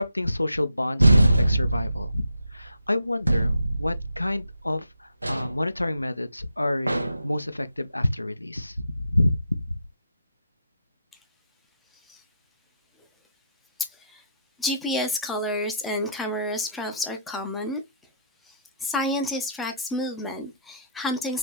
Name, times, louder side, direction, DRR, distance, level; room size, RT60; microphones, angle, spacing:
voice 1, 0.0-2.3 2.5-6.9 7.2-9.8, left 1 dB, 85° left, 0.4 m, -28 dB
sound 1, 1.0-2.6 3.3-4.5 5.2-5.6 6.9-7.3, right 1 dB, 80° right, 0.6 m, -22 dB
voice 2, 13.8-14.2 14.6-17.8 18.4-21.4, left 1 dB, 5° left, 0.5 m, -29 dB
3.3 x 2.9 x 2.3 m
figure-of-eight pair, 140°, 0 cm